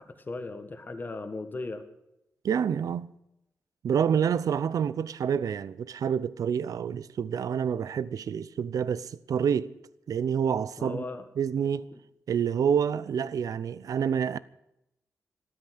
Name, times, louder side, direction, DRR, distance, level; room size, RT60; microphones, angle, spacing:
voice 1, 0.0-1.9 10.8-11.3, left 3 dB, 30° left, 1.7 m, -37 dB
voice 2, 2.4-3.1 3.8-9.7 10.1-11.0 11.4-11.9 12.3-14.4, right 7 dB, 90° right, 0.7 m, -28 dB
13.5 x 13.0 x 8.1 m
wide cardioid pair, 125°, 6 cm